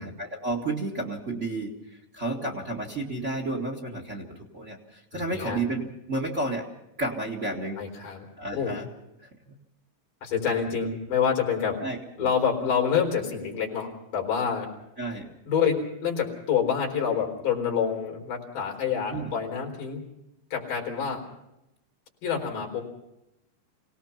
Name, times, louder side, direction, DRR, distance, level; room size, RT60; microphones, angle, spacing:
voice 1, 0.0-6.6 7.0-7.8 8.4-8.9 9.5-9.6 11.8-12.3 15.0-15.3 19.1-19.3, right 2 dB, 55° right, 2 dB, 0.7 m, -32 dB
voice 2, 5.1-5.6 7.8-8.3 8.5-8.7 10.2-11.8 12.2-14.7 15.5-20.0 20.5-21.2 22.2-22.9, left 7 dB, 50° left, 0 dB, 5.5 m, -27 dB
26.0 x 18.0 x 5.8 m, 0.89 s
omnidirectional pair, 5.0 m